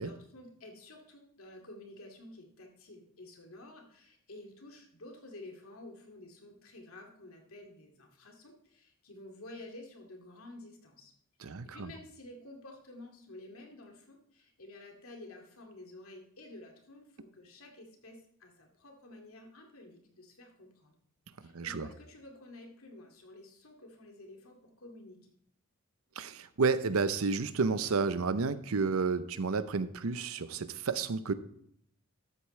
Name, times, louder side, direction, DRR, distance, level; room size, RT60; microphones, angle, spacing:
voice 1, 0.0-11.1 11.4-21.0 21.4-25.3, left 2 dB, 90° left, 2 dB, 2.3 m, -51 dB
voice 2, 11.4-11.9 21.4-21.9 26.2-31.3, right 4 dB, 90° right, 14 dB, 0.7 m, -31 dB
12.5 x 8.4 x 3.2 m, 0.69 s
head